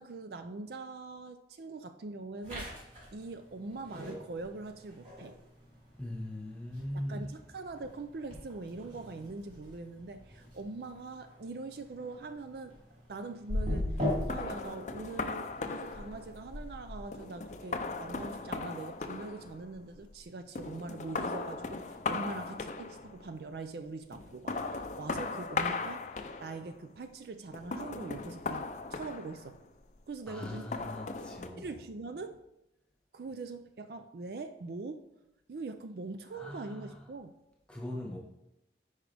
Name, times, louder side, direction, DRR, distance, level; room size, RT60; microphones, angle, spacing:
voice 1, 0.0-5.4 6.9-29.6 30.1-30.7 31.6-32.4 33.1-35.1 35.5-37.3, right 3 dB, 60° right, 0.4 m, -43 dB
sound 1, 2.4-17.2, left 1 dB, 40° right, 2.9 m, -44 dB
voice 2, 6.0-7.4 30.3-31.7 36.3-37.0 37.7-38.2, left 1 dB, 5° left, 1.3 m, -40 dB
sound 2, 13.5-20.2 20.5-23.3 24.1-26.8 27.5-29.8 30.4-31.5, left 3 dB, 40° left, 0.5 m, -37 dB
9.6 x 5.0 x 3.4 m
head